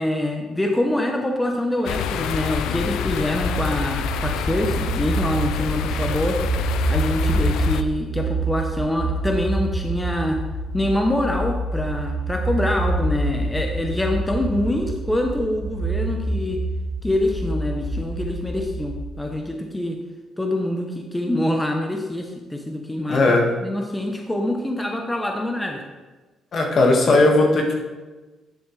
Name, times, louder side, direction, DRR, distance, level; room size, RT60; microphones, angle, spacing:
voice 1, 0.0-6.4 6.9-10.4 10.7-16.6 17.0-20.0 20.4-23.3 23.6-25.8, left 1 dB, 10° left, 3 dB, 0.9 m, -25 dB
sound 1, 1.8-7.8, left 8 dB, 90° left, 0.4 m, -27 dB
sound 2, 3.3-19.3, right 2 dB, 60° right, 2.5 m, -27 dB
voice 2, 23.1-23.5 26.5-27.7, left 2 dB, 55° left, 1 dB, 1.8 m, -17 dB
10.5 x 7.2 x 3.3 m, 1.2 s
cardioid pair, 90°, 0 cm